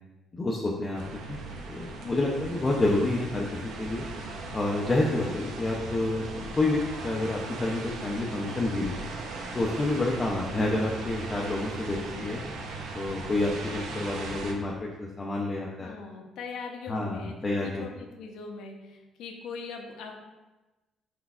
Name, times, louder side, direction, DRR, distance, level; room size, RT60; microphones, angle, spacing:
voice 1, 0.4-1.0 1.3-1.4 1.7-4.0 4.5-9.0 9.5-12.4 12.9-15.9 16.9-17.8, left 2 dB, 20° left, -2 dB, 0.4 m, -29 dB
sound 1, 0.9-14.5, right 3 dB, 90° right, 0.5 m, -38 dB
voice 2, 11.9-12.4 15.8-20.2, left 4 dB, 80° left, 3 dB, 0.6 m, -41 dB
4.4 x 4.0 x 2.3 m, 1.1 s
cardioid pair, 160°, 0 cm